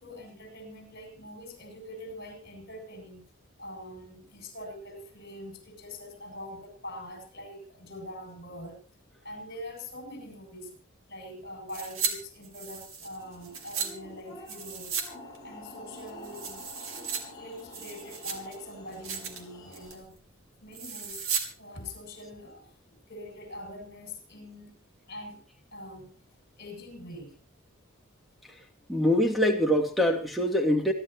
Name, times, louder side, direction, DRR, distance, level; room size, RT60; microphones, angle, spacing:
voice 1, 0.0-8.8 9.2-10.8 11.1-15.0 15.4-16.6 17.4-20.2 20.6-21.2 21.6-24.7 25.1-25.4 25.7-26.2 26.6-27.4, left 1 dB, 50° left, 5 dB, 7.8 m, -44 dB
sound 1, 11.7-12.1 12.4-13.9 14.5-15.1 15.3-15.4 15.9-17.2 17.6-18.6 18.9-19.4 19.7-20.0 20.7-21.5 21.8-21.9, right 6 dB, 75° right, 3.3 m, -35 dB
sound 2, 13.2-20.0, left 1 dB, 20° left, 7.1 m, -48 dB
voice 2, 28.9-30.9, equal, ahead, 3 dB, 2.8 m, -24 dB
27.0 x 12.0 x 3.0 m, 0.32 s
head